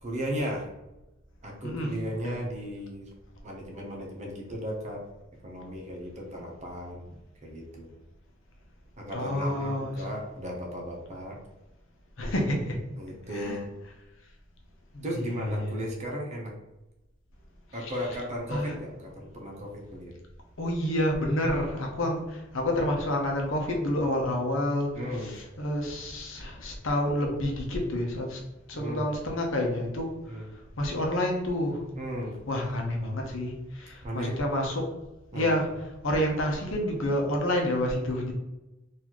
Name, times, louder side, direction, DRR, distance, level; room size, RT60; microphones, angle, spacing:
voice 1, 0.0-0.6 1.4-3.1 3.4-5.0 5.4-7.0 7.4-7.9 9.0-11.4 13.0-13.6 15.0-16.5 17.7-20.1 24.9-25.3 28.7-29.0 30.3-30.5 32.0-32.3 34.0-34.4 35.3-35.5, equal, 35° right, -1 dB, 0.8 m, -35 dB
voice 2, 9.1-9.9 12.2-12.8 13.3-13.6 14.9-15.8 17.8-17.9 18.5-18.7 20.6-24.9 25.2-28.4 28.7-30.4 30.8-31.8 32.5-34.9 35.3-35.7 36.0-38.3, left 1 dB, 70° left, 1 dB, 0.8 m, -29 dB
4.0 x 2.7 x 3.0 m, 1.0 s
head